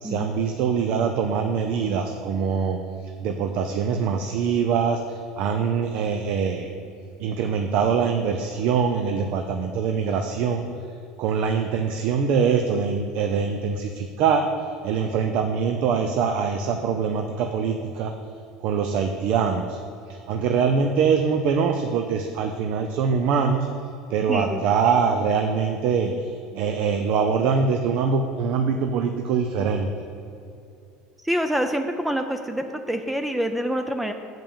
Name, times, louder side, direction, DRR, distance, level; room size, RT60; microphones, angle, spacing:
voice 1, 0.0-6.7 7.2-10.7 11.2-14.5 14.8-18.1 18.6-19.8 20.1-23.7 24.1-29.9, right 6 dB, 60° right, 5 dB, 0.6 m, -23 dB
voice 2, 24.3-24.6 31.2-34.1, equal, 5° right, 6 dB, 0.4 m, -26 dB
7.5 x 5.3 x 7.1 m, 2.6 s
supercardioid pair, 115°, 2 cm